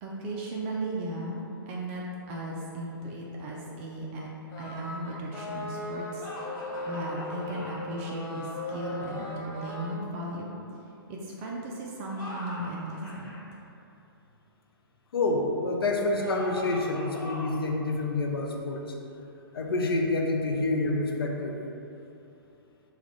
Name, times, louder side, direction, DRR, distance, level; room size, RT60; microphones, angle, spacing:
voice 1, 0.0-4.3 4.6-6.2 6.9-10.5 11.1-13.3, right 1 dB, 35° right, -3 dB, 0.4 m, -36 dB
sound 1, 4.5-10.0, left 1 dB, 25° left, 0.5 m, -38 dB
sound 2, 6.2-7.9 12.0-13.4 16.2-17.7, left 1 dB, 60° left, 1.1 m, -41 dB
voice 2, 15.1-18.9 19.5-21.6, left 2 dB, 80° left, 1 dB, 0.5 m, -28 dB
3.6 x 2.3 x 3.3 m, 2.8 s
hypercardioid pair, 120°, 12 cm